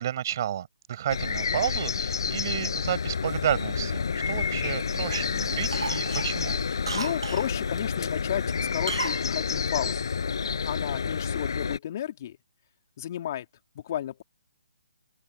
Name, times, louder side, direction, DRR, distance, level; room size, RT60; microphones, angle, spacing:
voice 1, 0.0-6.6, right 10 dB, 40° right, 5.2 m, -31 dB
sound 1, 1.1-11.8, left 6 dB, 60° left, 6.0 m, -29 dB
Cough, 3.5-4.7 5.1-5.3 5.7-7.5 8.9-9.2 9.5-9.6, right 4 dB, 70° right, 1.3 m, -35 dB
voice 2, 6.8-10.2 10.6-12.4 13.0-13.4 13.7-14.2, left 11 dB, 40° left, 3.3 m, -33 dB
open air
figure-of-eight pair, 145°, 3 cm